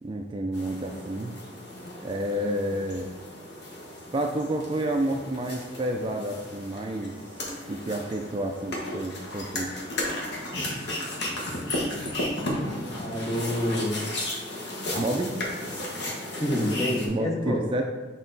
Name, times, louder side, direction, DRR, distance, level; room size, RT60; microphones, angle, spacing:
voice 1, 0.0-1.3 2.0-3.1 4.1-7.2 7.7-9.8 15.0-15.3 17.1-17.8, right 1 dB, 25° right, 3 dB, 0.3 m, -29 dB
sound 1, 0.5-17.1, left 1 dB, 65° left, 1.3 m, -34 dB
voice 2, 13.0-14.0 16.4-17.6, left 1 dB, 15° left, 0 dB, 0.9 m, -27 dB
6.4 x 3.8 x 4.0 m, 1.3 s
head